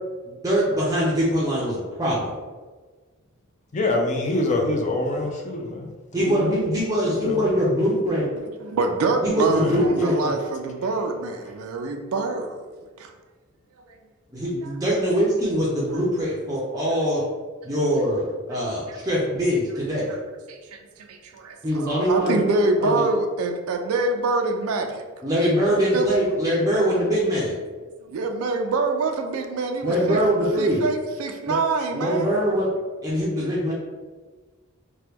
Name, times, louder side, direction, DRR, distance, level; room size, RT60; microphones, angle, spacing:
voice 1, 0.4-2.3 6.1-8.3 9.2-10.3 14.3-17.2 17.6-20.1 21.6-22.4 22.8-23.0 25.2-27.5 29.8-30.8 31.5-31.6 31.9-32.7 33.0-33.7, equal, 15° right, -6 dB, 0.5 m, -23 dB
voice 2, 3.7-5.9 6.2-6.4 7.0-7.5 9.5-9.8, left 2 dB, 35° left, 2 dB, 0.4 m, -25 dB
voice 3, 8.6-12.7 13.0-13.1 14.6-14.7 18.9-19.0 20.1-20.2 20.5-20.8 21.1-25.0 25.9-26.1 28.1-30.2 30.6-32.3 33.4-33.7, right 3 dB, 85° right, 4 dB, 0.4 m, -25 dB
2.9 x 2.2 x 3.4 m, 1.4 s
head